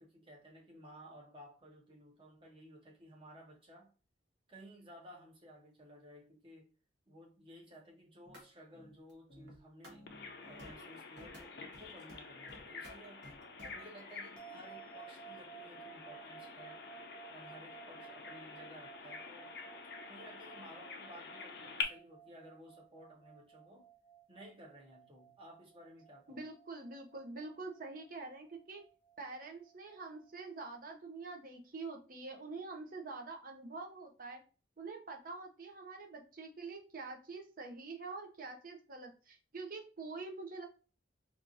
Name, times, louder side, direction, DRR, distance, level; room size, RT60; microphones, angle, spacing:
voice 1, 0.0-3.9 4.5-6.7 7.1-10.1 10.4-13.2 13.7-16.8 17.3-19.6 20.1-23.9 24.3-26.4, equal, 25° right, 0.9 m, -56 dB
sound 1, 8.2-8.4 8.7-11.4 11.7-12.2 12.5-14.0, equal, 60° right, 1.1 m, -55 dB
Bird vocalization bird call bird song, 10.1-21.8, left 5 dB, 55° left, 0.5 m, -47 dB
sound 2, 14.4-30.9, right 9 dB, 5° left, 0.5 m, -57 dB
voice 2, 26.3-28.8 29.2-34.4 34.8-40.6, right 3 dB, 45° right, 0.7 m, -46 dB
4.4 x 2.5 x 2.6 m
head